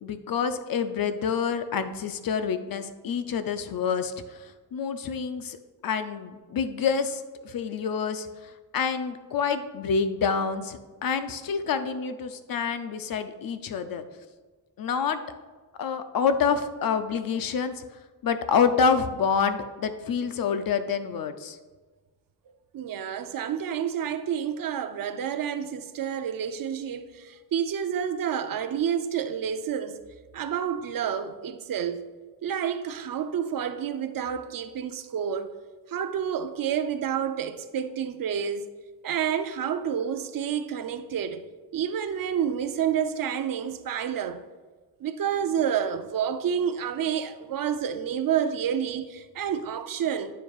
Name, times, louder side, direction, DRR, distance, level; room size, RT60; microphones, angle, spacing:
voice 1, 0.0-5.6 5.8-14.0 14.8-15.2 15.8-17.8 18.2-21.6, left 6 dB, 60° left, 0.5 m, -27 dB
voice 2, 22.7-30.0 30.3-32.0 32.4-35.6 35.9-38.7 39.0-41.5 41.7-44.4 45.0-50.3, right 8 dB, 55° right, 0.5 m, -29 dB
9.1 x 7.0 x 2.4 m
wide cardioid pair, 135°, 41 cm